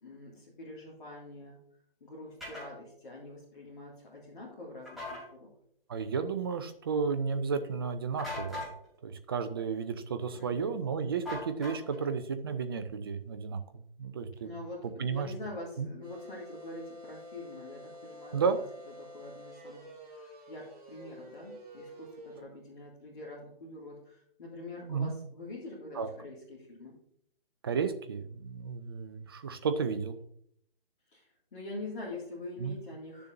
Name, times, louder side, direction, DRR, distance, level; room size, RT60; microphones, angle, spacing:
voice 1, 0.0-1.6 2.0-5.5 10.3-10.8 14.4-18.6 19.0-27.0 31.1-33.3, left 2 dB, 55° left, -4 dB, 2.3 m, -45 dB
sound 1, 2.4-2.7 4.9-5.2 8.2-8.7 11.3-12.0, left 2 dB, ahead, 2.7 m, -39 dB
voice 2, 5.9-8.7 9.0-14.5 15.0-15.3 15.8-15.9 18.3-18.6 24.8-25.2 26.0-26.1 27.6-30.2 32.6-32.8, right 5 dB, 25° right, 10 dB, 0.5 m, -33 dB
sound 2, 16.0-22.4, equal, 40° right, 2.3 m, -49 dB
12.0 x 6.8 x 2.6 m, 0.69 s
figure-of-eight pair, 145°, 29 cm